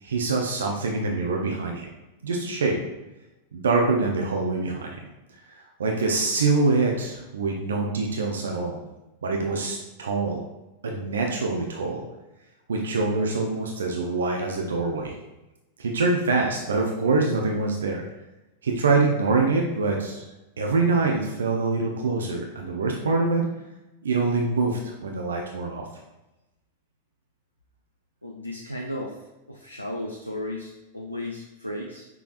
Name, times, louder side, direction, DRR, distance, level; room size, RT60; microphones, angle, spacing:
voice 1, 0.0-1.9 2.2-2.8 3.5-4.9 5.5-8.8 9.2-10.4 10.8-12.0 12.7-15.1 15.8-18.0 18.6-20.2 20.6-23.4 24.0-25.9, right 3 dB, 70° right, 0 dB, 0.6 m, -25 dB
voice 2, 28.2-29.1 29.5-32.1, left 1 dB, 85° left, -1 dB, 0.5 m, -34 dB
5.9 x 3.4 x 2.5 m, 1.0 s
figure-of-eight pair, 90°, 0 cm